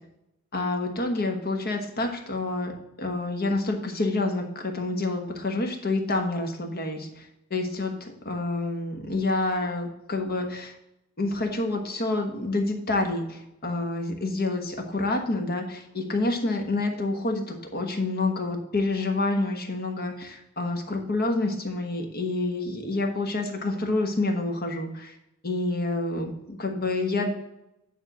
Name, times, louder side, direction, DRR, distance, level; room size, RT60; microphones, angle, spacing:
voice 1, 0.5-2.7 3.0-7.2 7.5-10.7 11.2-25.1 25.4-27.3, left 2 dB, 45° left, 3 dB, 1.3 m, -28 dB
9.2 x 3.6 x 6.0 m, 0.86 s
head